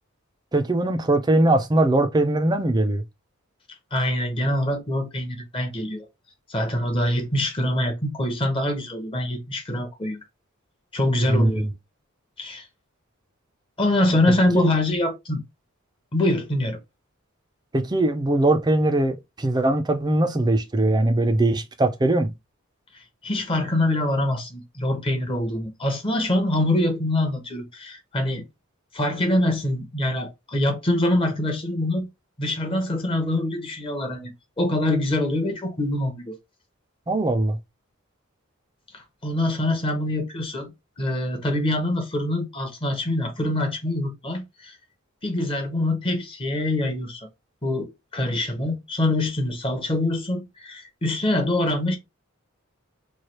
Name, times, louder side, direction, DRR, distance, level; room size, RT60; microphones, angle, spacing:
voice 1, 0.5-3.0 11.3-11.7 14.3-14.7 17.7-22.3 37.1-37.6, right 2 dB, 20° right, 0.5 m, -21 dB
voice 2, 3.9-6.1 6.5-10.2 10.9-11.7 12.4-12.7 13.8-15.4 16.1-16.8 23.2-28.4 28.9-32.1 32.4-36.3 38.9-40.7 41.0-44.8 45.2-47.3 47.6-52.0, left 1 dB, 25° left, 0.8 m, -24 dB
3.2 x 2.3 x 4.2 m
head